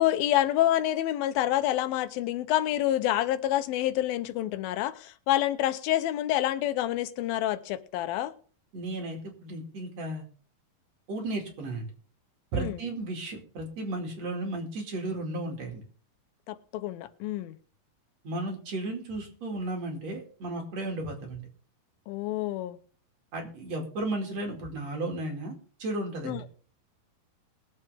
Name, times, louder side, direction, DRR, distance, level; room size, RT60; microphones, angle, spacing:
voice 1, 0.0-8.3 12.5-12.8 16.5-17.6 22.1-22.8 26.3-26.4, left 13 dB, 85° left, 2.6 m, -27 dB
voice 2, 8.7-10.2 11.1-11.9 12.5-15.8 18.2-21.4 23.3-26.4, right 2 dB, 50° right, 3.3 m, -34 dB
20.5 x 7.8 x 3.5 m
omnidirectional pair, 4.1 m